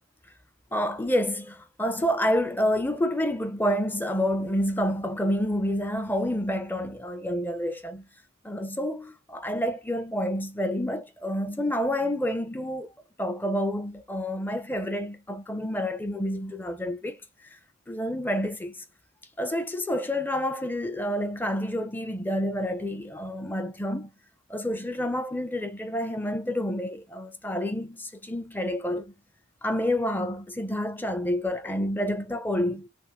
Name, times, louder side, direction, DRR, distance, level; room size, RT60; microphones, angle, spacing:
voice 1, 0.7-8.0 8.4-12.9 13.2-17.2 17.9-18.8 19.4-24.1 24.5-29.1 29.6-32.9, equal, 10° left, 0.5 m, -28 dB
3.5 x 3.0 x 4.2 m
head